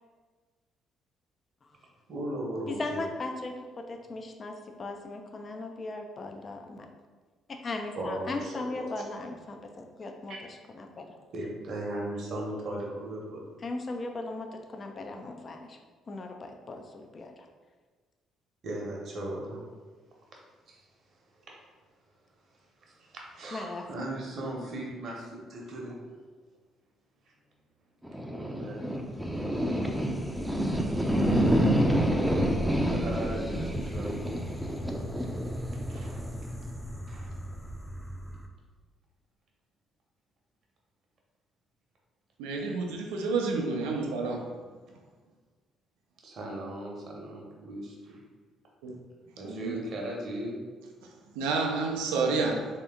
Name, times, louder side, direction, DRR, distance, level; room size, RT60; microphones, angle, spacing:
voice 1, 2.1-3.0 7.9-8.9 10.3-10.4 11.3-13.4 18.6-19.6 20.7-20.8 21.5-21.6 22.8-26.0 28.1-28.9 29.3-29.4 31.3-31.7 32.0-32.1 32.6-34.8 35.2-35.6 35.9-36.2 37.1-37.3 46.2-48.2 49.4-50.7, right 1 dB, 55° right, -2 dB, 0.9 m, -38 dB
voice 2, 2.7-6.9 7.5-10.4 10.7-11.1 13.6-15.8 16.1-17.5 23.5-23.9, left 2 dB, 40° left, 4 dB, 0.4 m, -38 dB
sound 1, 28.0-38.5, equal, 5° right, 0.5 m, -29 dB
voice 3, 42.4-44.5 48.8-48.9 49.4-49.8 51.4-52.7, right 4 dB, 80° right, 1 dB, 0.5 m, -29 dB
3.3 x 2.8 x 3.5 m, 1.4 s
hypercardioid pair, 50°, 0 cm